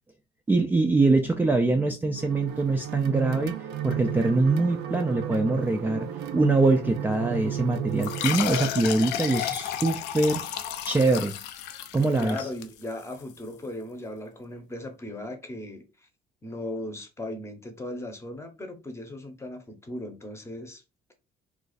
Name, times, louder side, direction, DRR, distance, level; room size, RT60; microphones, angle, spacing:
voice 1, 0.5-3.6 3.8-6.1 6.3-10.4 10.8-11.4 11.9-12.5, right 2 dB, 10° right, 0.3 m, -23 dB
sound 1, 2.2-8.4, right 10 dB, 85° right, 0.5 m, -33 dB
sound 2, 8.0-13.2, left 10 dB, 90° left, 0.4 m, -32 dB
voice 2, 12.2-15.9 16.4-20.8, left 1 dB, 15° left, 0.8 m, -37 dB
2.4 x 2.3 x 3.9 m
cardioid pair, 110°, 17 cm